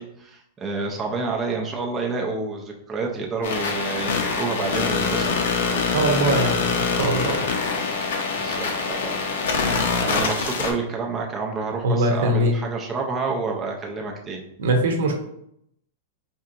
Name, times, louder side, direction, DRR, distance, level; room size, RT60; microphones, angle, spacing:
voice 1, 0.0-5.3 8.3-9.4 10.0-14.4, right 4 dB, 15° right, 0 dB, 0.4 m, -29 dB
sound 1, 3.4-10.7, left 4 dB, 70° left, 0.6 m, -24 dB
voice 2, 5.9-7.4 11.8-12.5 14.6-15.1, right 1 dB, 75° right, 4 dB, 0.7 m, -22 dB
4.4 x 2.7 x 2.4 m, 0.74 s
supercardioid pair, 165°, 0 cm